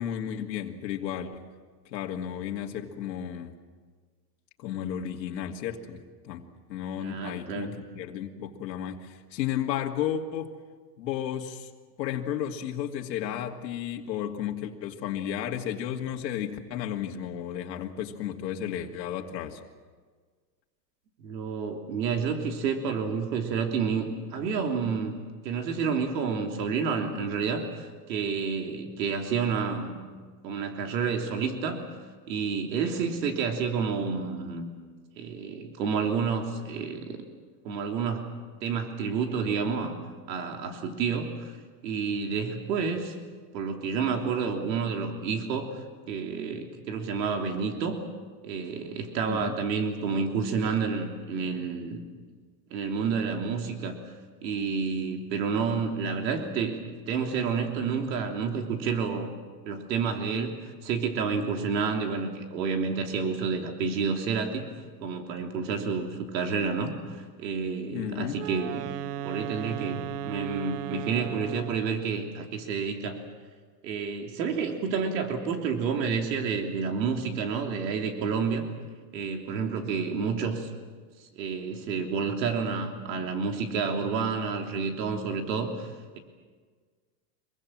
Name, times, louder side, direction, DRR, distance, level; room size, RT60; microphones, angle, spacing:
voice 1, 0.0-1.4 1.9-3.5 4.6-6.4 6.7-10.5 11.0-11.7 12.0-19.6 28.3-28.4 49.3-49.6 67.9-68.4, left 10 dB, 85° left, 2 dB, 2.4 m, -33 dB
voice 2, 7.0-7.8 21.2-30.0 30.4-31.8 32.3-34.7 35.2-37.2 37.6-38.3 38.6-39.9 40.3-41.5 41.8-43.2 43.5-45.7 46.1-48.0 48.4-52.0 52.7-54.0 54.4-59.3 59.7-60.6 60.8-64.6 65.0-68.9 69.2-73.2 73.8-78.7 79.1-80.7 81.4-85.9, right 5 dB, 85° right, 3 dB, 3.3 m, -29 dB
Wind instrument woodwind instrument, 68.3-72.0, right 10 dB, 70° right, 1.2 m, -36 dB
25.5 x 22.5 x 7.4 m, 1.5 s
supercardioid pair, 140°, 49 cm